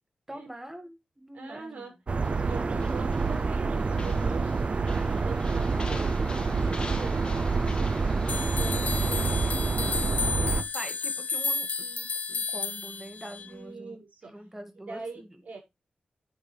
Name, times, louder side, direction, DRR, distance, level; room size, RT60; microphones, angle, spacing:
voice 1, 0.3-1.9 10.7-15.4, right 1 dB, 10° right, 2.2 m, -44 dB
voice 2, 1.3-1.9 2.4-7.3 8.6-10.6 13.4-14.3 14.9-15.6, right 3 dB, 70° right, 6.2 m, -43 dB
sound 1, 2.1-10.6, right 4 dB, 45° right, 0.6 m, -27 dB
sound 2, 2.2-9.6, left 2 dB, 35° left, 2.0 m, -43 dB
sound 3, 8.3-13.5, left 5 dB, 65° left, 0.7 m, -32 dB
10.0 x 9.2 x 3.4 m
wide cardioid pair, 115°, 3 cm